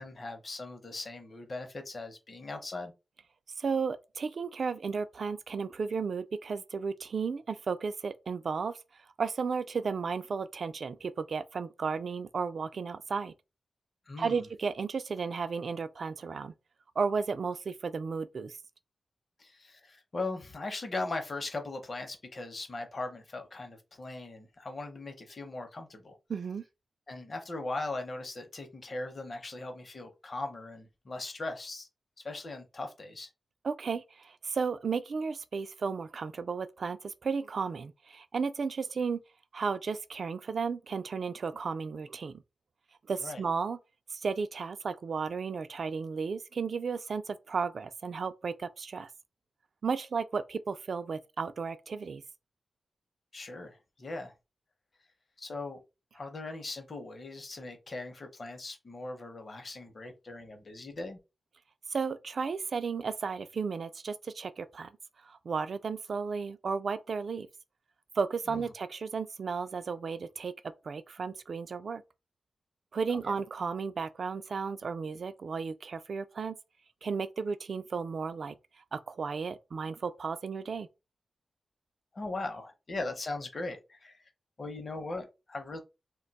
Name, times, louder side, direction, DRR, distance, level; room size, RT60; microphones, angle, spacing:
voice 1, 0.0-2.9 14.1-14.5 19.4-26.2 27.1-31.9 32.2-33.3 43.2-43.4 53.3-54.3 55.4-55.8 56.1-61.2 68.5-68.7 73.3-73.4 82.1-84.3 84.6-85.8, left 2 dB, 40° left, 0.7 m, -39 dB
voice 2, 3.6-8.8 9.2-13.3 14.2-16.5 17.0-18.6 26.3-26.6 33.6-39.2 39.5-42.4 43.1-43.8 44.1-49.1 49.8-52.2 61.9-64.9 65.2-67.5 68.2-70.5 70.8-72.0 72.9-76.6 77.0-78.5 78.9-80.9, right 5 dB, 55° right, 0.3 m, -34 dB
2.5 x 2.2 x 3.9 m
wide cardioid pair, 145°, 0 cm